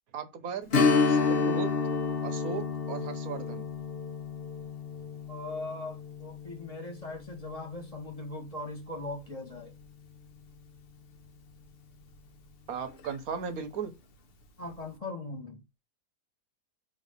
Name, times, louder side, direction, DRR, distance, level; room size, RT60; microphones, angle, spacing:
voice 1, 0.1-0.7 1.1-1.7 2.2-3.6 12.7-13.9, right 6 dB, 60° right, 1.3 m, -36 dB
Strum, 0.7-9.9 10.2-10.3 12.9-13.0 13.5-13.6, left 4 dB, 55° left, 0.7 m, -31 dB
voice 2, 5.3-9.7 14.6-15.6, left 2 dB, 20° left, 1.6 m, -40 dB
5.6 x 3.3 x 5.2 m
omnidirectional pair, 1.8 m